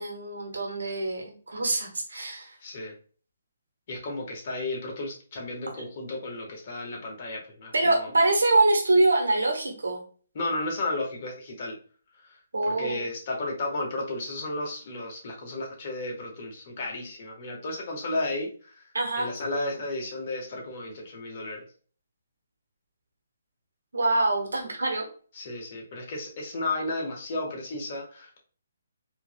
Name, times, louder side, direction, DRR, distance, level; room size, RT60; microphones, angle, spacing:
voice 1, 0.0-2.6 7.7-10.0 12.5-13.0 18.9-19.3 23.9-25.0, right 2 dB, 70° right, 1 dB, 1.3 m, -24 dB
voice 2, 2.6-2.9 3.9-8.1 10.3-11.8 12.1-12.4 12.7-21.6 25.3-28.4, left 2 dB, 40° left, 0 dB, 1.2 m, -33 dB
4.4 x 2.8 x 2.2 m, 0.42 s
figure-of-eight pair, 140°, 0 cm